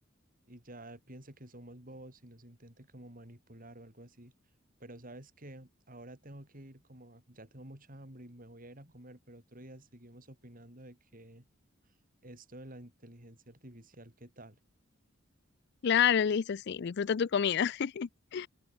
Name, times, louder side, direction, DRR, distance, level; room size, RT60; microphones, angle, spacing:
voice 1, 0.5-4.3 4.8-11.5 11.9-12.0 12.2-14.6, right 1 dB, 45° right, 5.8 m, -51 dB
voice 2, 15.8-18.5, left 8 dB, 55° left, 0.4 m, -28 dB
open air
head